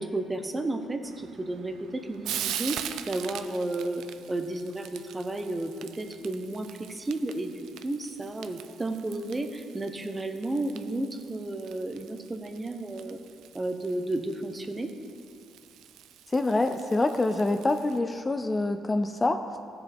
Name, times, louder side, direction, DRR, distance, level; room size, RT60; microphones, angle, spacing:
voice 1, 0.0-13.2 13.5-14.9, right 2 dB, 20° right, 6 dB, 0.9 m, -33 dB
Frying (food), 1.0-18.0, right 10 dB, 85° right, 0.4 m, -43 dB
voice 2, 16.3-19.6, left 2 dB, 20° left, 7 dB, 0.4 m, -26 dB
15.5 x 7.0 x 3.5 m, 2.4 s
cardioid pair, 90°, 0 cm